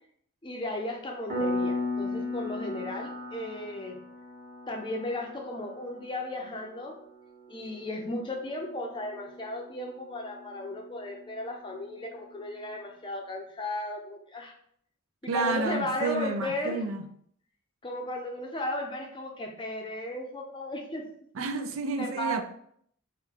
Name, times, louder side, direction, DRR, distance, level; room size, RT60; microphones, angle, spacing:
voice 1, 0.4-4.0 4.7-7.0 7.5-14.5 15.2-16.8 17.8-21.1 22.0-22.4, left 1 dB, 20° left, 0.5 m, -35 dB
Piano, 1.3-11.7, left 2 dB, 40° right, 1.3 m, -38 dB
voice 2, 15.3-17.1 21.3-22.4, right 3 dB, 60° right, 0.4 m, -30 dB
3.7 x 2.2 x 4.4 m
head